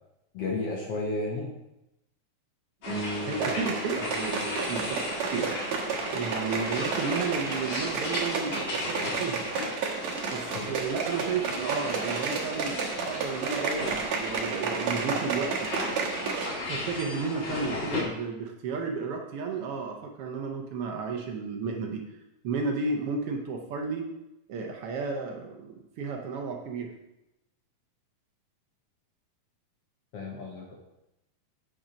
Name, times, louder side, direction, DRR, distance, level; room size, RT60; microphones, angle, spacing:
voice 1, 0.3-1.5 10.5-10.7 30.1-30.8, left 2 dB, 65° left, -1 dB, 1.7 m, -32 dB
sound 1, 2.8-18.0, left 2 dB, 40° left, 2.5 m, -36 dB
sound 2, 2.8-7.3, equal, 35° right, 2.3 m, -40 dB
sound 3, 3.3-16.6 16.9-17.0, right 5 dB, 65° right, 2.2 m, -32 dB
voice 2, 3.3-5.5 6.1-9.4 10.3-12.8 13.0-15.7 16.7-22.0 22.4-24.1 24.5-26.9, right 4 dB, 80° right, 2 dB, 1.3 m, -33 dB
8.8 x 5.8 x 5.1 m, 0.91 s
omnidirectional pair, 3.8 m